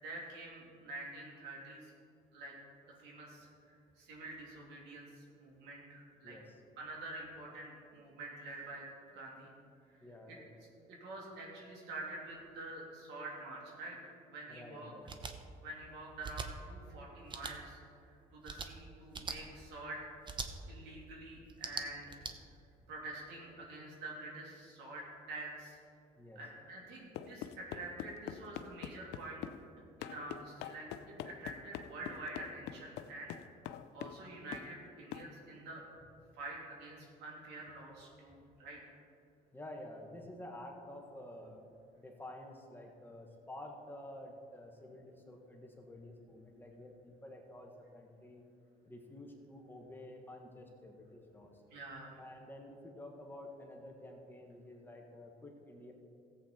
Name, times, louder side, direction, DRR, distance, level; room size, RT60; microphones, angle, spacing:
voice 1, 0.0-1.9 2.3-2.5 3.0-6.4 6.8-8.8 9.1-9.5 9.9-10.0 10.3-10.4 10.9-14.0 14.3-14.9 15.6-17.8 18.1-20.0 20.7-22.1 22.9-25.8 26.3-29.4 30.0-33.3 33.9-35.8 36.3-38.8 51.7-52.2, right 2 dB, 90° right, -2 dB, 2.9 m, -47 dB
voice 2, 6.2-6.6 10.0-10.5 14.5-15.1 26.1-26.4 39.5-41.6 42.0-48.4 48.8-51.6 52.2-55.9, left 1 dB, 10° left, 1 dB, 1.5 m, -50 dB
sound 1, 15.1-15.3 16.2-16.5 17.3-17.5 18.4-18.7 19.1-19.4 20.2-20.5 21.5-22.3, right 5 dB, 30° right, 0.8 m, -41 dB
sound 2, 27.1-29.6 30.0-34.2 34.5-34.7 35.1-35.3, left 11 dB, 85° left, 0.5 m, -44 dB
15.0 x 8.2 x 4.4 m, 2.6 s
cardioid pair, 110°, 17 cm